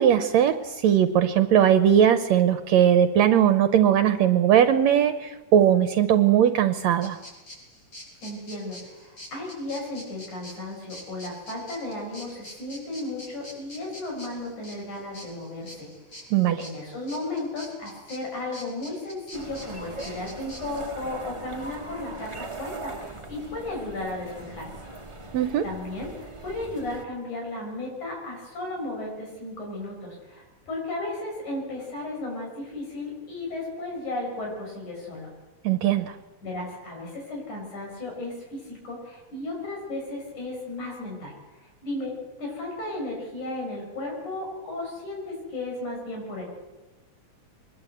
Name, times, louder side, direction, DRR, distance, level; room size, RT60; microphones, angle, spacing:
voice 1, 0.0-7.2 16.3-16.7 25.3-25.6 35.6-36.1, right 9 dB, 70° right, 10 dB, 2.1 m, -19 dB
sound 1, 7.0-20.8, left 1 dB, 45° left, 8.7 m, -45 dB
voice 2, 8.2-15.9 16.6-24.9 25.6-35.3 36.4-42.1 42.4-46.4, left 2 dB, 80° left, 0 dB, 7.7 m, -34 dB
sound 2, 19.3-27.0, right 2 dB, 15° right, 1.3 m, -40 dB
23.5 x 21.0 x 8.0 m, 1.1 s
omnidirectional pair, 3.4 m